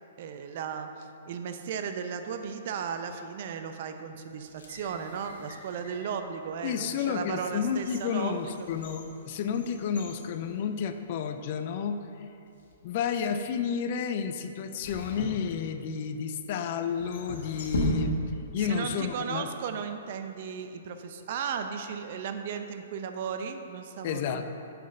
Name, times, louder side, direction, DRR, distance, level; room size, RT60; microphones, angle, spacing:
voice 1, 0.2-8.7 18.4-24.4, right 6 dB, 55° right, 7 dB, 0.5 m, -36 dB
sound 1, 4.4-6.1 6.7-6.9 7.4-11.2 11.5-11.6 12.4-12.8 14.8-16.1 16.9-18.5 18.8-18.9, equal, 70° left, 1.3 m, -37 dB
voice 2, 6.6-12.3 12.8-18.2 18.5-19.5 24.0-24.5, left 7 dB, 50° left, 8 dB, 0.5 m, -31 dB
5.8 x 5.2 x 5.5 m, 2.8 s
hypercardioid pair, 125°, 0 cm